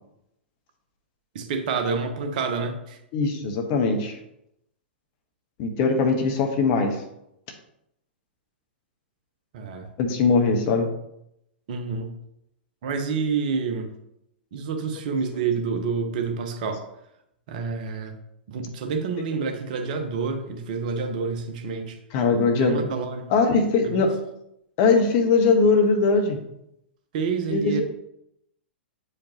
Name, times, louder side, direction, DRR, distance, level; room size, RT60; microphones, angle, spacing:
voice 1, 1.3-3.0 9.5-9.9 11.7-12.1 12.8-13.9 14.5-16.8 17.5-18.1 18.5-22.0 22.5-23.3 23.8-24.1 27.1-27.8, right 5 dB, 50° right, 5 dB, 1.0 m, -28 dB
voice 2, 3.1-4.1 5.6-7.0 10.0-10.9 19.3-19.4 22.1-22.9 23.3-24.1 24.8-26.4 27.5-27.8, left 4 dB, 40° left, 4 dB, 1.2 m, -21 dB
8.6 x 5.0 x 2.9 m, 0.81 s
figure-of-eight pair, 105°, 6 cm